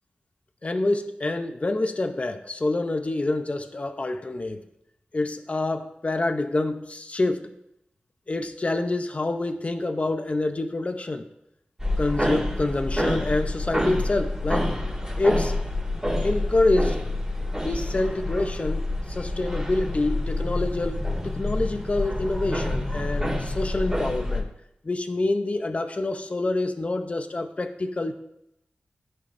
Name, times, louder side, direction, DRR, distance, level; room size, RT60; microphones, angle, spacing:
voice 1, 0.6-4.6 5.1-7.5 8.3-11.3 12.0-14.7 15.2-15.6 16.2-17.0 17.6-24.5 24.8-28.1, left 2 dB, 35° left, 7 dB, 0.7 m, -27 dB
sound 1, 11.8-24.4, left 1 dB, 15° right, 2.1 m, -27 dB
14.5 x 5.6 x 2.6 m, 0.79 s
wide cardioid pair, 90°, 4 cm